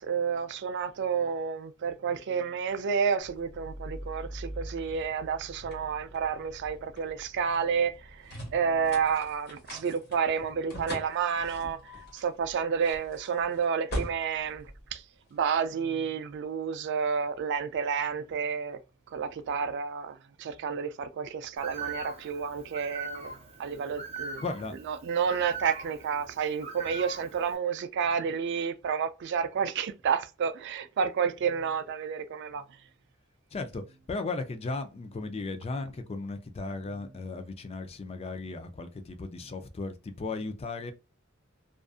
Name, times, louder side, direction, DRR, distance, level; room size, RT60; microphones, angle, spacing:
voice 1, 0.0-15.0 15.3-18.8 19.1-23.3 23.6-24.4 24.9-32.6, right 6 dB, 55° right, 0.3 m, -30 dB
sound 1, 3.2-15.6, equal, 50° left, 1.2 m, -42 dB
Bird, 21.6-27.6, right 4 dB, 30° right, 0.8 m, -41 dB
voice 2, 24.4-24.7 33.5-33.8 34.1-40.9, left 3 dB, 30° left, 0.4 m, -36 dB
2.5 x 2.4 x 2.3 m
head